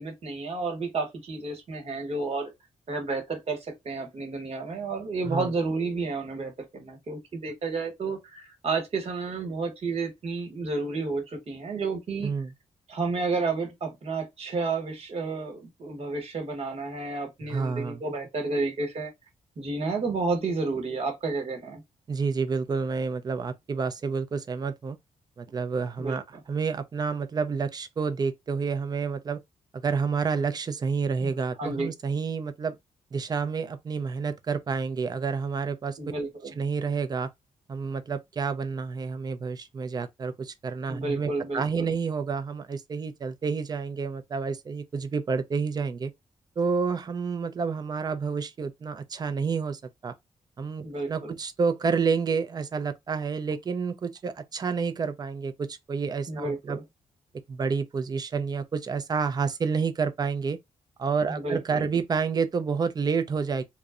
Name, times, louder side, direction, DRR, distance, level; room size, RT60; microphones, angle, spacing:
voice 1, 0.0-2.5 2.9-3.6 3.8-12.3 12.9-19.1 19.6-21.8 26.0-26.2 31.2-31.3 31.6-31.9 36.0-36.5 40.9-41.9 50.8-51.3 56.3-56.8 61.3-61.9, right 3 dB, 50° right, 1.1 m, -31 dB
voice 2, 17.4-18.0 22.1-25.0 25.4-29.4 29.8-32.8 33.1-36.0 36.6-37.3 37.7-46.1 46.6-50.1 50.6-56.8 57.5-60.6 61.0-63.6, right 5 dB, 30° right, 0.4 m, -29 dB
2.6 x 2.0 x 2.3 m
cardioid pair, 115°, 13 cm